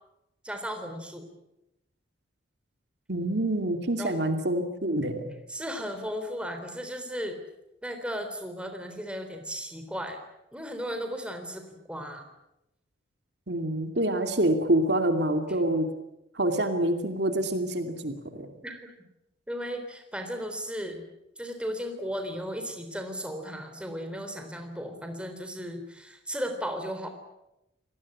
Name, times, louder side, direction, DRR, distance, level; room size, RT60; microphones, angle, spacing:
voice 1, 0.4-1.3 4.0-4.2 5.5-7.4 7.8-10.2 10.5-12.2 18.6-18.9 19.5-21.1 21.4-27.1, equal, 5° right, 5 dB, 3.7 m, -35 dB
voice 2, 3.1-5.3 13.5-15.9 16.3-18.5, right 1 dB, 60° right, 6 dB, 2.6 m, -26 dB
27.5 x 19.0 x 8.7 m, 0.90 s
head